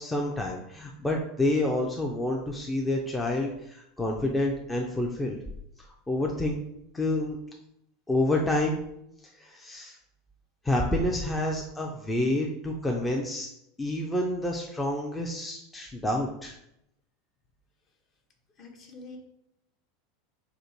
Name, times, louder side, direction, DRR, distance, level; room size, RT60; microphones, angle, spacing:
voice 1, 0.0-5.4 5.8-6.6 6.9-7.4 8.1-8.8 9.4-10.0 10.6-13.5 13.8-16.5, left 1 dB, 10° left, 0 dB, 0.5 m, -28 dB
voice 2, 18.6-19.2, left 3 dB, 35° left, 2 dB, 0.8 m, -45 dB
3.7 x 2.5 x 4.3 m, 0.80 s
figure-of-eight pair, 80°, 0 cm